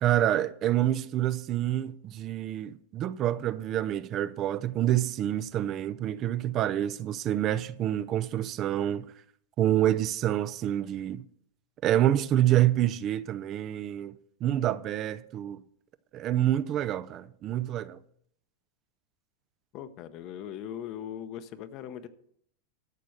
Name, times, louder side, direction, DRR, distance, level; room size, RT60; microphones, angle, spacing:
voice 1, 0.0-9.0 9.6-11.2 11.8-14.1 14.4-15.6 16.1-18.0, right 12 dB, 30° right, 0.4 m, -27 dB
voice 2, 19.7-22.1, left 10 dB, 35° left, 0.8 m, -39 dB
13.5 x 6.8 x 6.4 m
supercardioid pair, 160°, 0 cm